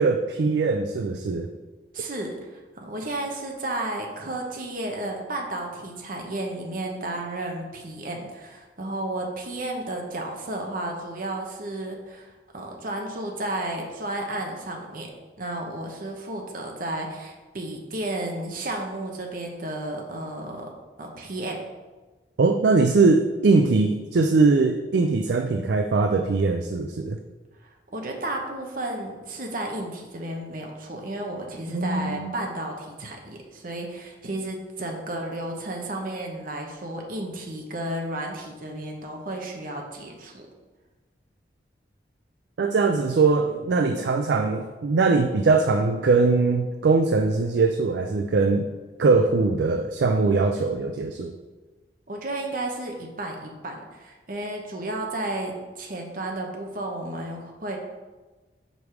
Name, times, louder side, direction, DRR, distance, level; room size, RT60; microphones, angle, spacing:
voice 1, 0.0-1.5 22.4-27.2 31.7-32.3 42.6-48.7 49.0-51.3, right 4 dB, 70° right, 6 dB, 0.4 m, -21 dB
voice 2, 1.9-15.1 15.4-20.7 21.0-21.6 27.6-40.4 52.1-57.8, right 1 dB, 50° right, 1 dB, 0.9 m, -33 dB
5.2 x 4.8 x 6.0 m, 1.3 s
head